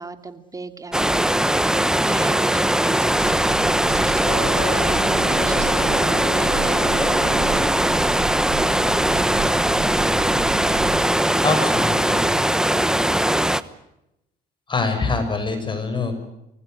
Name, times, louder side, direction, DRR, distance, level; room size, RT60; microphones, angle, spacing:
voice 1, 0.0-1.6 2.0-7.6, right 3 dB, 20° right, 9 dB, 2.5 m, -37 dB
sound 1, 0.9-13.6, right 1 dB, 5° right, 1.1 m, -20 dB
sound 2, 3.1-11.1, right 7 dB, 45° right, 2.8 m, -32 dB
Wind instrument woodwind instrument, 4.2-7.8, left 5 dB, 55° left, 4.8 m, -33 dB
voice 2, 11.4-12.4 14.7-16.1, left 3 dB, 30° left, 7 dB, 6.7 m, -25 dB
25.5 x 19.5 x 9.5 m, 0.87 s
cardioid pair, 110°, 17 cm